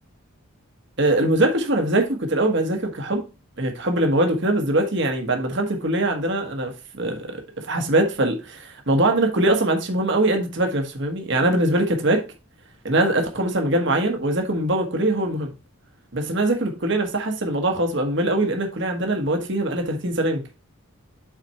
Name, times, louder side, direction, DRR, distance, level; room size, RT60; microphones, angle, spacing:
voice 1, 1.0-3.2 3.6-12.2 12.8-15.5 16.1-20.4, right 1 dB, 55° right, 1.3 m, -22 dB
7.4 x 4.3 x 4.3 m
head